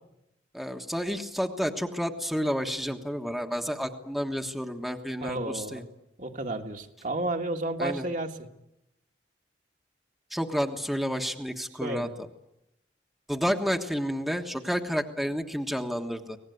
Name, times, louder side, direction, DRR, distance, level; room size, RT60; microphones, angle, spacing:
voice 1, 0.5-5.8 7.8-8.0 10.3-12.1 13.3-16.4, equal, ahead, 3 dB, 1.4 m, -30 dB
voice 2, 5.2-5.8 6.2-8.4 11.8-12.1, right 2 dB, 45° right, 3 dB, 1.8 m, -32 dB
24.0 x 19.5 x 9.5 m, 0.86 s
head